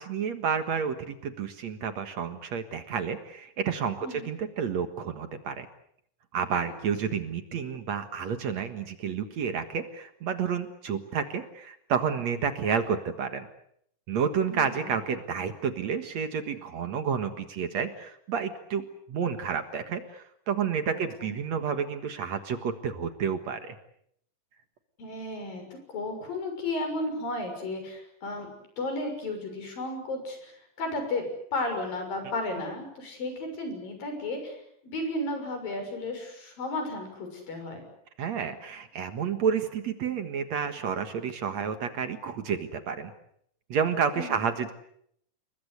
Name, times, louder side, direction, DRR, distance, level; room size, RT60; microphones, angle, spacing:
voice 1, 0.0-5.7 6.3-13.5 14.1-23.8 38.2-43.1 43.7-44.7, right 6 dB, 55° right, 9 dB, 2.5 m, -30 dB
voice 2, 14.5-15.0 20.9-21.3 25.0-28.5 28.8-37.8 44.1-44.5, left 2 dB, 75° left, 5 dB, 8.3 m, -34 dB
29.0 x 22.5 x 8.1 m, 0.71 s
omnidirectional pair, 4.0 m